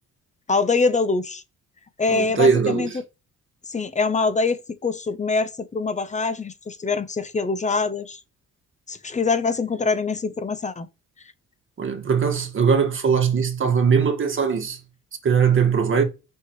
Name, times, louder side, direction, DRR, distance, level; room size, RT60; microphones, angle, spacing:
voice 1, 0.5-1.4 2.0-3.0 3.7-8.2 8.9-10.9, left 4 dB, 25° left, 0.8 m, -24 dB
voice 2, 2.1-3.0 11.8-14.8 15.2-16.0, right 6 dB, 40° right, 1.8 m, -20 dB
5.7 x 5.4 x 3.1 m
cardioid pair, 90°, 30 cm